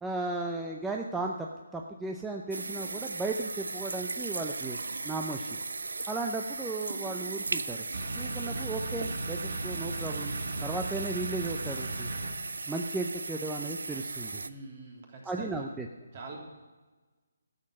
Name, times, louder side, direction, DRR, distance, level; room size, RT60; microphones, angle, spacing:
voice 1, 0.0-4.8 5.0-5.6 6.1-7.8 8.1-10.3 10.6-12.1 12.7-14.4 15.3-15.9, right 3 dB, 5° right, 1 dB, 0.6 m, -35 dB
sound 1, 2.5-14.5, right 3 dB, 80° right, 0.6 m, -37 dB
sound 2, 7.9-12.3, right 2 dB, 60° right, 2.0 m, -37 dB
voice 2, 14.4-15.7 16.1-16.4, right 3 dB, 45° right, 0 dB, 3.2 m, -44 dB
13.0 x 7.6 x 6.2 m, 1.3 s
hypercardioid pair, 155°, 0 cm